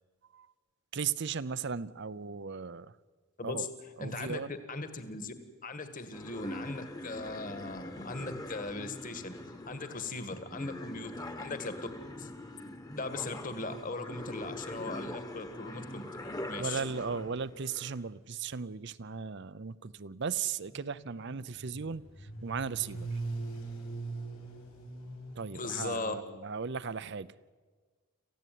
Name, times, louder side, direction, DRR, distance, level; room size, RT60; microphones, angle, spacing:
voice 1, 0.9-2.9 3.4-3.7 4.0-4.5 16.6-22.0 22.4-23.1 25.4-27.3, right 6 dB, 55° right, 0.6 m, -36 dB
voice 2, 4.0-5.3 5.6-9.4 9.7-11.8 12.2-12.3 13.0-16.8 25.5-26.1, left 3 dB, 40° left, 1.8 m, -39 dB
sound 1, 6.1-18.0, left 1 dB, 15° left, 1.3 m, -43 dB
sound 2, 20.6-25.7, right 3 dB, 90° left, 6.9 m, -41 dB
27.0 x 15.5 x 9.4 m
head